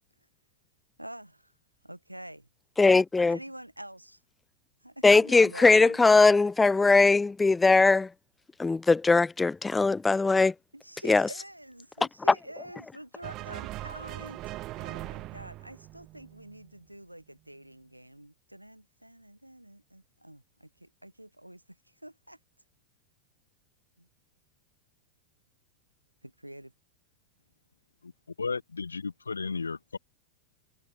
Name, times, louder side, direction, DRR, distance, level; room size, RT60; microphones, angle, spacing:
voice 1, 1.0-1.5 1.8-2.5 3.3-4.2 4.8-6.0 10.7-22.4 24.0-24.1 26.2-26.7, right 1 dB, 90° right, 2.5 m, -47 dB
voice 2, 2.8-3.4 5.0-8.1 8.6-10.5 11.0-11.3, left 3 dB, 10° left, 0.4 m, -20 dB
sound 1, 13.2-16.7, right 17 dB, 35° right, 2.0 m, -40 dB
voice 3, 28.4-30.0, left 4 dB, 75° left, 0.5 m, -33 dB
figure-of-eight pair, 90°, 0 cm